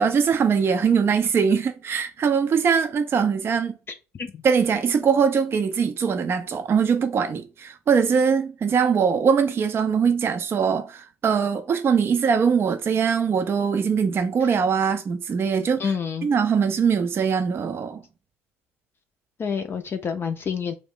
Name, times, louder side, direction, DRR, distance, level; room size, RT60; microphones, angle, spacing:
voice 1, 0.0-3.7 4.4-15.9 16.2-18.0, right 6 dB, 35° right, 0.4 m, -22 dB
voice 2, 3.9-4.3 15.8-16.3 19.4-20.8, left 6 dB, 35° left, 0.4 m, -28 dB
2.4 x 2.1 x 3.6 m
hypercardioid pair, 60°, 7 cm